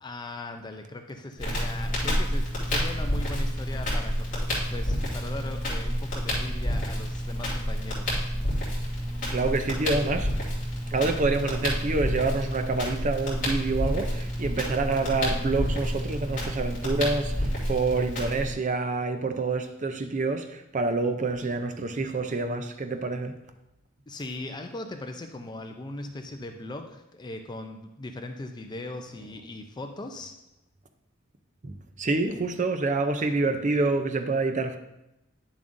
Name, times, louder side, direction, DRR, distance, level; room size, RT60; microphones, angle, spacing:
voice 1, 0.0-8.3 24.1-30.4, left 2 dB, 20° left, 0.4 m, -39 dB
Crackle, 1.4-18.5, equal, 45° left, 2.9 m, -29 dB
voice 2, 9.3-10.4 10.9-23.3 31.6-34.8, right 3 dB, 40° right, 0.5 m, -27 dB
10.0 x 7.1 x 2.6 m
head